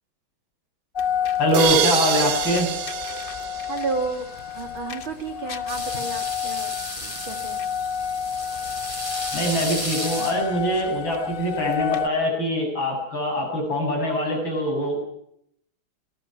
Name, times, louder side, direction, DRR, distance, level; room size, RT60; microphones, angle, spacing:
sound 1, 1.0-12.1, left 8 dB, 35° left, 1.1 m, -30 dB
voice 1, 1.4-2.7 9.3-15.0, equal, 75° left, 1 dB, 8.6 m, -23 dB
sound 2, 1.5-4.4, right 10 dB, 65° right, 1.5 m, -26 dB
voice 2, 3.7-4.3 4.6-7.6, right 4 dB, 90° right, 6 dB, 3.6 m, -32 dB
sound 3, 5.7-10.8, left 1 dB, 15° left, 4.4 m, -33 dB
25.5 x 19.0 x 6.0 m, 0.72 s
omnidirectional pair, 2.2 m